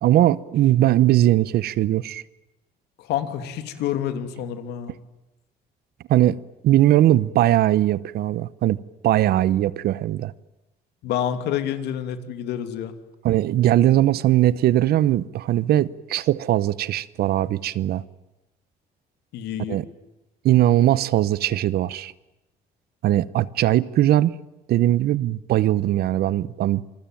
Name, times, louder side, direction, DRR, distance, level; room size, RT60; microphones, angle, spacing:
voice 1, 0.0-2.2 6.1-6.4 6.6-8.8 9.0-10.3 13.2-18.0 19.7-19.8 20.4-22.1 23.0-24.3 24.7-26.8, right 13 dB, 65° right, 1.0 m, -20 dB
voice 2, 3.0-4.9 11.0-12.9 19.3-19.8, left 10 dB, 80° left, 2.8 m, -28 dB
27.5 x 22.5 x 9.1 m
cardioid pair, 110°, 17 cm